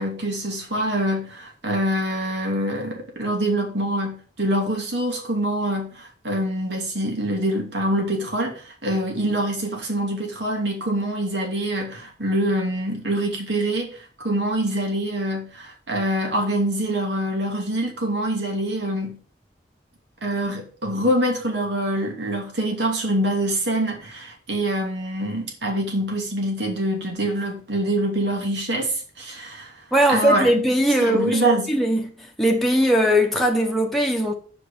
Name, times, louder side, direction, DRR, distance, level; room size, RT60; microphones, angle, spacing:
voice 1, 0.0-13.9 14.2-19.2 20.2-29.7 30.1-30.5 31.0-31.7, right 1 dB, 80° right, 2.6 m, -25 dB
voice 2, 29.9-32.1 32.4-34.3, equal, ahead, 1.1 m, -20 dB
6.3 x 5.0 x 6.6 m
head